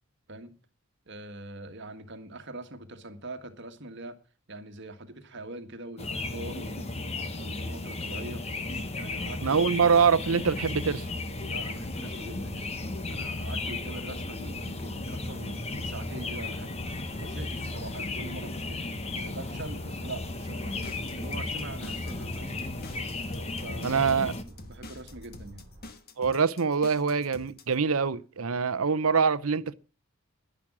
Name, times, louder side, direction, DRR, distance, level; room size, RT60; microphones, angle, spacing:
voice 1, 1.1-4.2 4.5-6.9 7.4-8.5 8.9-9.6 11.4-12.8 13.1-16.7 17.2-18.8 19.1-22.6 23.5-24.0 24.5-25.7, right 2 dB, 55° right, 1.7 m, -43 dB
sound 1, 6.0-24.4, left 2 dB, 30° left, 1.1 m, -35 dB
sound 2, 8.6-25.9, right 1 dB, 35° right, 3.0 m, -50 dB
voice 2, 9.4-11.0 23.8-24.3 26.2-29.7, right 5 dB, 75° right, 0.7 m, -24 dB
sound 3, 20.6-27.7, left 2 dB, 45° left, 1.3 m, -47 dB
11.5 x 10.5 x 6.1 m
head